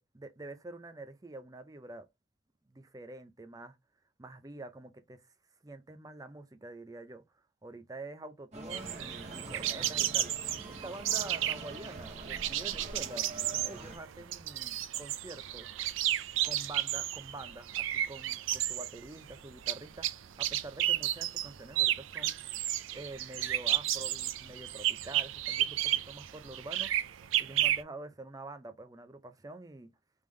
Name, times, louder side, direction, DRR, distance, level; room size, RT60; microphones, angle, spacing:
voice 1, 0.0-2.1 2.7-3.8 4.2-5.2 5.6-7.2 7.6-10.3 10.7-13.3 13.6-15.7 16.4-20.1 20.4-22.4 22.9-29.9, right 2 dB, 20° right, 0.5 m, -47 dB
sound 1, 8.5-14.0, right 2 dB, 35° right, 1.3 m, -45 dB
sound 2, 8.7-27.8, right 12 dB, 75° right, 0.4 m, -33 dB
3.6 x 3.4 x 3.2 m
head